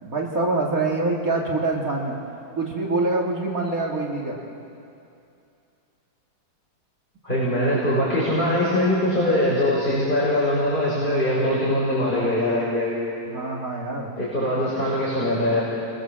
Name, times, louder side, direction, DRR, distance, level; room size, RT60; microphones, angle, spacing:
voice 1, 0.0-2.2 2.6-4.4 13.3-14.1, right 2 dB, 50° right, -2 dB, 2.6 m, -25 dB
voice 2, 7.2-13.0 14.2-15.6, left 1 dB, 25° left, -8 dB, 6.5 m, -22 dB
29.5 x 22.5 x 7.6 m, 2.6 s
omnidirectional pair, 2.0 m